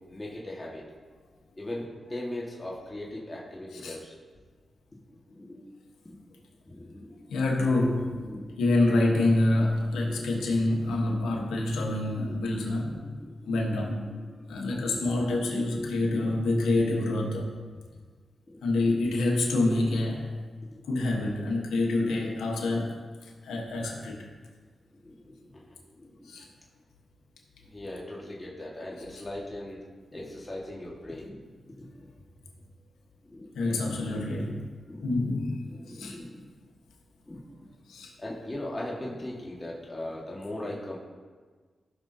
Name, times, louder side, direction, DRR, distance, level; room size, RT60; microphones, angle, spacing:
voice 1, 0.1-0.8 1.6-4.2 5.1-5.6 6.0-6.1 6.7-7.3 8.2-8.6 11.2-11.4 12.1-12.4 12.8-13.3 14.0-14.3 14.9-15.1 18.5-18.6 20.7-21.3 24.0-24.1 25.0-26.3 27.6-29.8 30.1-31.4 31.8-32.1 33.2-33.8 34.9-35.1 35.7-36.5 37.3-37.7 38.2-41.0, left 1 dB, 25° left, -4 dB, 1.9 m, -40 dB
voice 2, 7.3-8.2 8.6-13.0 13.4-14.0 14.5-17.5 18.6-20.3 20.9-24.3 26.2-26.5 33.5-34.6 35.0-36.2 37.9-38.1, left 2 dB, 90° left, -1 dB, 1.3 m, -27 dB
15.5 x 6.1 x 2.9 m, 1.5 s
supercardioid pair, 45°, 0 cm